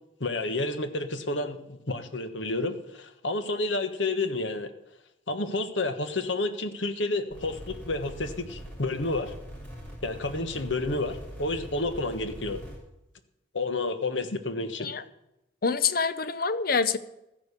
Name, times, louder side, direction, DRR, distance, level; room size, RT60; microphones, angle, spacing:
voice 1, 0.2-4.7 5.3-9.3 10.0-12.6 13.5-14.9, left 2 dB, 85° left, 9 dB, 1.4 m, -30 dB
sound 1, 7.3-12.8, equal, 10° left, 6.2 m, -42 dB
voice 2, 15.6-17.0, left 5 dB, 50° left, 13 dB, 0.8 m, -26 dB
13.5 x 10.5 x 6.8 m, 0.88 s
head